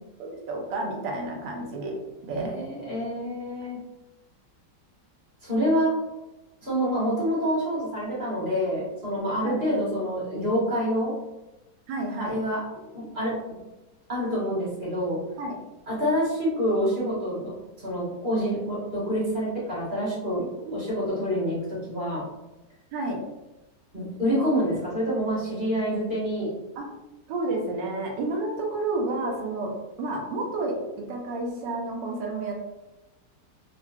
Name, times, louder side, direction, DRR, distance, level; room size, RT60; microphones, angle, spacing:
voice 1, 0.2-2.5 9.3-9.6 11.9-12.4 15.4-15.6 20.6-20.8 22.9-23.2 26.8-26.9 27.3-29.7 30.0-30.8 31.1-32.5, right 2 dB, 85° right, 0 dB, 1.4 m, -30 dB
voice 2, 2.3-3.8 5.4-6.0 6.6-11.1 12.2-13.4 14.1-15.2 15.9-17.5 17.8-20.4 20.7-22.2 23.9-26.5, equal, 35° right, -8 dB, 1.1 m, -27 dB
3.7 x 2.2 x 2.2 m, 1.0 s
omnidirectional pair, 1.9 m